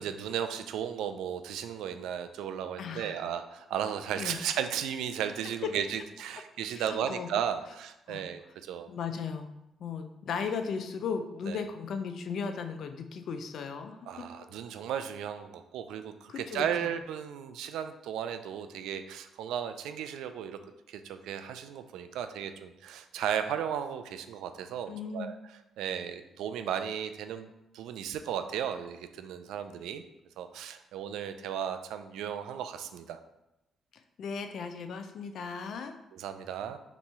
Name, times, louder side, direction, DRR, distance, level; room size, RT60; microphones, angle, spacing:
voice 1, 0.0-8.9 11.5-11.6 14.1-20.6 20.9-25.3 25.8-27.5 27.7-30.0 30.4-33.2 36.1-36.8, right 9 dB, 85° right, 9 dB, 0.3 m, -35 dB
voice 2, 2.8-3.3 4.2-4.4 5.2-5.3 6.7-7.3 8.1-8.3 8.9-9.5 9.8-14.3 16.3-16.9 24.9-25.3 34.2-35.9, left 5 dB, 65° left, 7 dB, 0.4 m, -36 dB
3.4 x 3.0 x 4.2 m, 0.90 s
cardioid pair, 90°, 0 cm